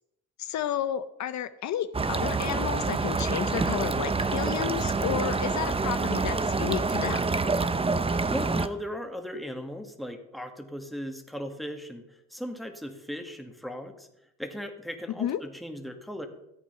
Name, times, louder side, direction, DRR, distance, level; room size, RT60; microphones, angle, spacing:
voice 1, 0.4-7.2 15.2-15.4, left 10 dB, 65° left, 11 dB, 0.7 m, -32 dB
sound 1, 1.9-8.7, right 4 dB, 20° right, 0.7 m, -27 dB
voice 2, 8.1-14.1 14.4-16.3, equal, ahead, 4 dB, 2.0 m, -37 dB
14.0 x 8.4 x 5.6 m, 0.84 s
cardioid pair, 90°, 30 cm